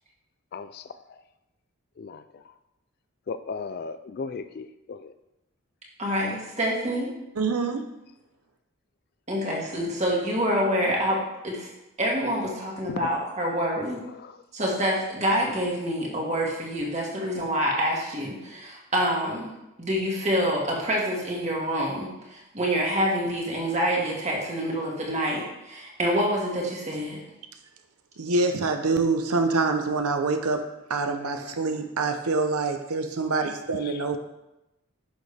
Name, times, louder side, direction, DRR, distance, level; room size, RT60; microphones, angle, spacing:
voice 1, 0.5-1.2 2.0-2.5 3.3-5.1 12.8-13.1 13.6-14.4 33.8-34.0, left 4 dB, 45° left, 12 dB, 0.3 m, -37 dB
voice 2, 6.0-7.1 9.3-11.7 12.0-14.0 14.5-19.5 19.8-27.2, equal, 30° right, -2 dB, 1.8 m, -27 dB
voice 3, 7.4-7.9 28.2-30.6 30.9-34.2, right 3 dB, 85° right, 6 dB, 0.8 m, -25 dB
10.5 x 6.5 x 3.3 m, 0.93 s
head